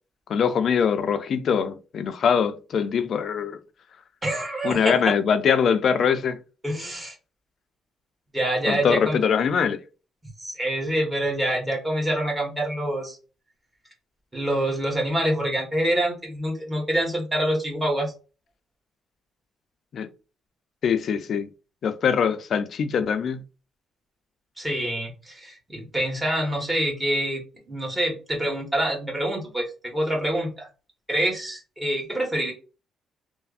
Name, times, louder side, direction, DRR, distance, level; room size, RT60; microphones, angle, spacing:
voice 1, 0.3-3.6 4.6-6.4 8.7-9.8 19.9-20.1 20.8-21.5 21.8-23.4, left 7 dB, 60° left, 0.4 m, -23 dB
voice 2, 4.2-4.9 6.6-7.1 8.3-9.2 10.4-13.2 14.3-18.1 24.6-27.4 27.7-30.7 31.1-32.5, right 1 dB, 15° right, 1.4 m, -26 dB
3.2 x 2.0 x 2.4 m
cardioid pair, 90°, 0 cm